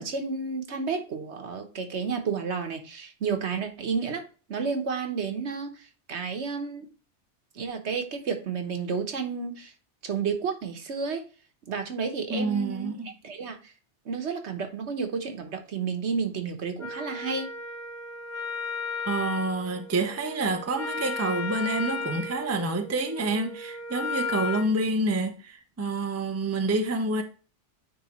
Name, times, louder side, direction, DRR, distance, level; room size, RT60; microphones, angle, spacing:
voice 1, 0.0-4.2 4.5-5.7 6.1-6.9 7.5-9.7 10.0-11.2 11.7-12.9 13.2-13.7 14.0-17.5, right 5 dB, 75° right, 1.3 m, -31 dB
voice 2, 12.3-13.1 19.1-27.2, right 2 dB, 15° right, 0.6 m, -28 dB
Wind instrument woodwind instrument, 16.8-24.7, left 4 dB, 15° left, 1.3 m, -35 dB
9.5 x 3.7 x 3.0 m
omnidirectional pair, 1.2 m